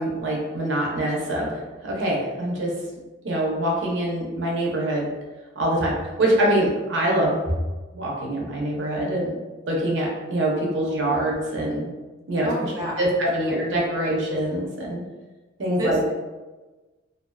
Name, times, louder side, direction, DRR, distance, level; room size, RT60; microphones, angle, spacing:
voice 1, 0.0-1.5 1.8-2.7 3.2-5.1 5.6-7.4 7.9-9.3 9.7-11.9 12.3-12.5 12.8-15.0 15.6-16.1, right 1 dB, 65° right, -2 dB, 0.6 m, -24 dB
voice 2, 12.4-14.7 15.8-16.1, equal, 20° right, -5 dB, 0.3 m, -32 dB
2.4 x 2.3 x 2.2 m, 1.2 s
head